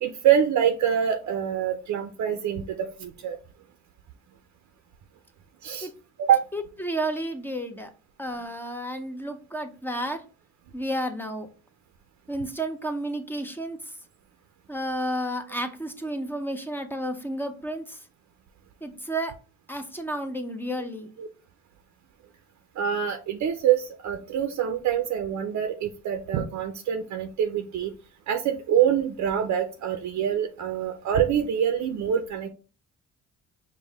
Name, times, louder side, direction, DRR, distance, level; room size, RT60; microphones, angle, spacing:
voice 1, 0.0-3.4 5.6-5.9 6.2-6.5 21.2-21.3 22.8-27.9 28.3-32.5, right 9 dB, 70° right, 6 dB, 0.6 m, -25 dB
voice 2, 6.5-7.9 8.2-10.2 10.7-11.5 12.3-13.9 14.7-18.0 18.8-19.3 19.7-21.1, right 1 dB, 5° left, 6 dB, 0.6 m, -31 dB
5.3 x 2.2 x 3.4 m, 0.35 s
cardioid pair, 90°, 30 cm